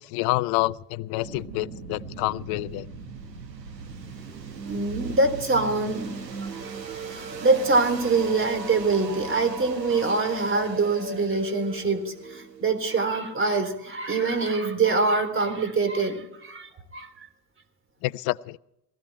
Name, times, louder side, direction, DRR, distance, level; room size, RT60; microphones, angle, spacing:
voice 1, 0.0-2.9 18.0-18.6, left 20 dB, 50° left, 21 dB, 0.6 m, -28 dB
sound 1, 1.2-14.0, right 4 dB, 85° right, 1.6 m, -38 dB
voice 2, 4.6-6.2 7.1-17.3, right 3 dB, 25° right, 8 dB, 3.6 m, -24 dB
19.0 x 15.5 x 4.5 m, 0.80 s
figure-of-eight pair, 65°, 49 cm